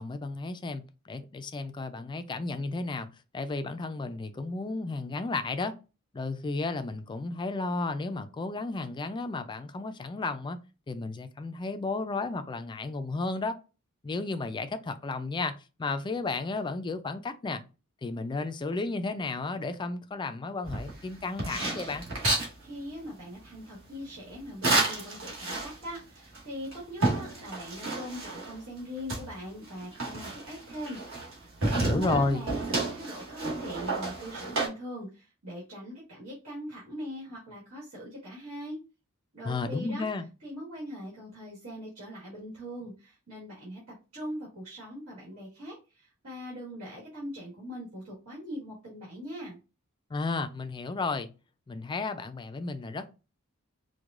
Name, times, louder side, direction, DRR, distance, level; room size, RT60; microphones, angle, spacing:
voice 1, 0.0-3.1 3.3-5.8 6.1-10.6 10.9-13.6 14.0-17.6 18.0-22.1 31.7-32.4 39.4-40.3 50.1-51.3 51.7-53.1, left 3 dB, 20° left, 0.3 m, -33 dB
sound 1, 20.6-22.5 24.6-26.0 26.3-26.4 26.7-28.6 29.1-31.3 31.6-34.7, right 2 dB, 65° right, 1.5 m, -31 dB
voice 2, 22.6-31.0 31.4-38.8 39.3-40.1 40.4-43.8 44.1-49.6, equal, 80° right, 1.5 m, -41 dB
4.7 x 2.2 x 2.4 m
head